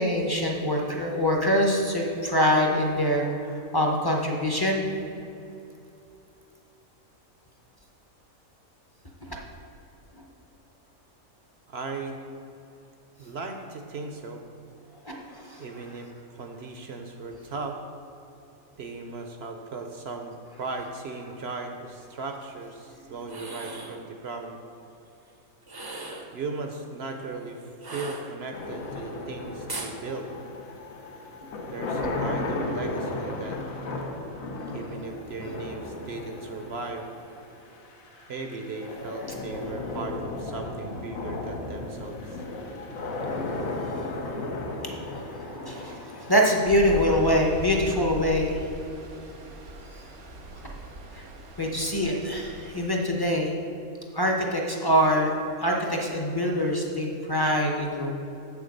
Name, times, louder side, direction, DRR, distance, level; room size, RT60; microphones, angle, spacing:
voice 1, 0.0-4.8 15.0-15.6 39.8-39.9 43.8-48.6 51.1-51.2 51.6-53.5 54.1-55.3 55.6-58.1, equal, 20° left, 0 dB, 0.7 m, -25 dB
voice 2, 11.7-12.2 13.2-14.4 15.6-16.1 16.4-17.8 18.8-24.6 26.3-27.6 27.9-30.3 31.7-33.6 34.7-37.1 38.3-42.4, right 3 dB, 60° right, 4 dB, 0.7 m, -37 dB
sound 1, 23.2-24.0 25.6-26.4 27.8-28.7 29.7-30.0, right 2 dB, 30° right, 0.4 m, -38 dB
sound 2, 28.5-47.6, left 2 dB, 75° left, 1.4 m, -35 dB
Stream, 46.6-52.9, right 1 dB, 90° right, 1.6 m, -39 dB
7.4 x 7.0 x 5.2 m, 2.8 s
omnidirectional pair, 1.5 m